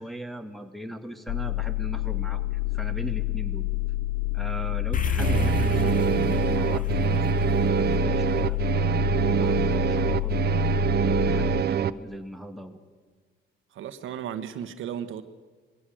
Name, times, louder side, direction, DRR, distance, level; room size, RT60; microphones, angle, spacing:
voice 1, 0.0-2.5 2.7-3.6 4.3-10.4 11.0-12.8, equal, ahead, 2.3 m, -39 dB
sound 1, 1.3-11.6, left 18 dB, 75° left, 0.6 m, -28 dB
sound 2, 4.9-9.4, left 5 dB, 40° left, 1.3 m, -32 dB
sound 3, 5.2-11.9, right 10 dB, 55° right, 0.8 m, -25 dB
voice 2, 13.7-15.2, right 9 dB, 80° right, 1.5 m, -35 dB
22.5 x 16.5 x 7.9 m
cardioid pair, 90°, 20 cm